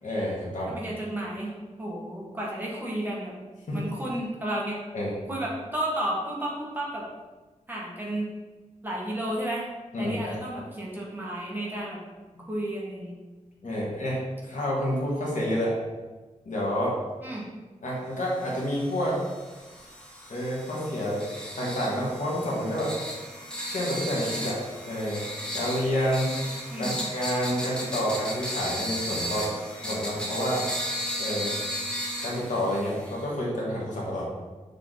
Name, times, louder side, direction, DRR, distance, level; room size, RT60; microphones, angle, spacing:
voice 1, 0.0-0.7 3.7-3.8 4.9-5.1 9.9-10.4 12.3-12.5 13.6-15.7 16.5-16.9 17.8-19.2 20.3-21.2 21.6-22.9 23.7-24.6 24.8-25.2 25.5-26.3 26.8-29.5 29.8-30.6 31.2-31.5 32.2-34.3, equal, 80° left, -5 dB, 1.8 m, -29 dB
voice 2, 0.7-1.5 1.8-3.3 3.7-4.8 5.3-7.0 7.7-8.3 8.8-9.6 10.0-12.0 12.5-13.2 13.8-13.9 17.2-17.4 26.7-27.0, right 1 dB, 15° right, -5 dB, 1.4 m, -32 dB
sound 1, 18.4-33.3, equal, 5° left, 1.1 m, -35 dB
6.7 x 3.7 x 3.9 m, 1.2 s
wide cardioid pair, 110°, 13 cm